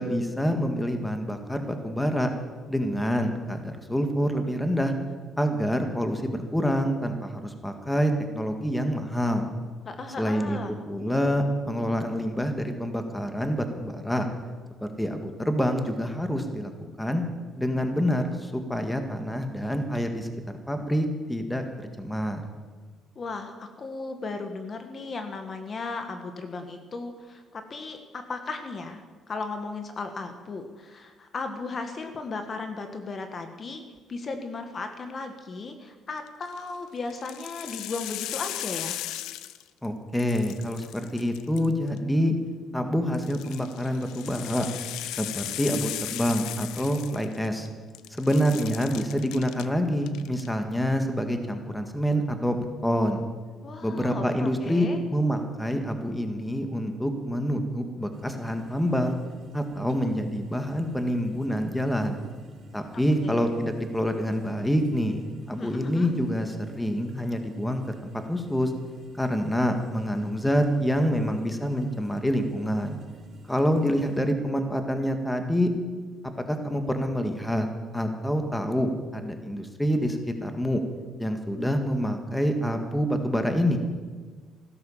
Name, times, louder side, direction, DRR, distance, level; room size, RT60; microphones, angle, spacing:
voice 1, 0.0-2.3 2.7-4.9 5.4-9.5 10.2-10.6 10.9-14.3 14.8-16.7 17.0-17.2 17.6-20.3 20.7-22.4 39.8-42.3 42.7-44.7 45.2-47.7 48.1-53.2 53.8-59.2 59.5-62.2 62.7-67.8 68.3-68.7 69.2-73.0 73.5-75.7 76.5-77.7 77.9-80.8 81.2-83.8, equal, 5° left, 6 dB, 1.9 m, -27 dB
voice 2, 9.8-10.8 23.1-33.8 34.1-39.0 53.6-55.0 62.9-63.5 65.6-66.1, left 3 dB, 40° left, 6 dB, 1.5 m, -36 dB
sound 1, 36.3-36.6 37.1-39.9 40.1-42.0 43.1-47.7 47.9-49.7 50.0-50.5, left 13 dB, 90° left, 0.6 m, -37 dB
sound 2, 58.1-74.2, right 2 dB, 50° right, 4.9 m, -51 dB
15.5 x 12.5 x 7.4 m, 1.5 s
cardioid pair, 110°, 0 cm